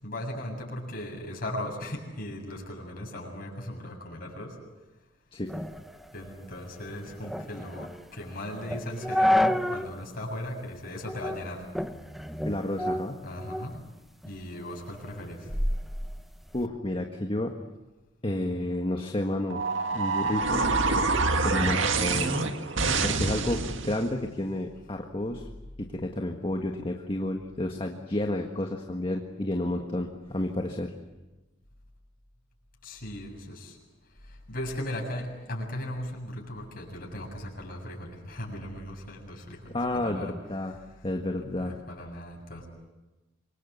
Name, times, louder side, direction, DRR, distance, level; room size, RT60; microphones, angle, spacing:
voice 1, 0.0-4.6 6.1-11.6 13.2-13.8 14.3-15.5 32.8-33.8 34.5-40.3 40.6-40.7 41.6-42.7, left 1 dB, 50° left, 0 dB, 7.5 m, -37 dB
sound 1, 5.5-10.0 10.3-10.4 11.0-11.4 11.8-13.8 14.2-16.7, left 1 dB, ahead, 1.1 m, -30 dB
voice 2, 12.4-13.2 16.5-17.5 18.2-19.6 19.9-22.3 23.0-25.5 25.8-30.9 39.7-40.7 41.0-41.8, left 1 dB, 30° left, 3 dB, 1.6 m, -31 dB
sound 2, 19.5-24.1, right 3 dB, 70° right, 2.0 m, -26 dB
27.5 x 24.0 x 8.2 m, 1.1 s
head